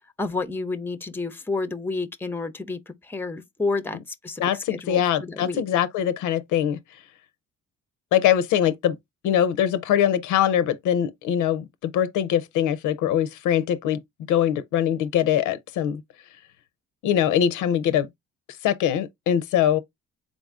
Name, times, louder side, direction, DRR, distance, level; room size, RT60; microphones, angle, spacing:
voice 1, 0.2-5.6, left 3 dB, 5° left, 0.5 m, -30 dB
voice 2, 4.4-6.8 8.1-9.0 9.2-14.0 14.3-16.0 17.0-18.1 18.6-19.8, left 10 dB, 85° left, 0.5 m, -22 dB
3.8 x 2.4 x 3.5 m
cardioid pair, 90°, 30 cm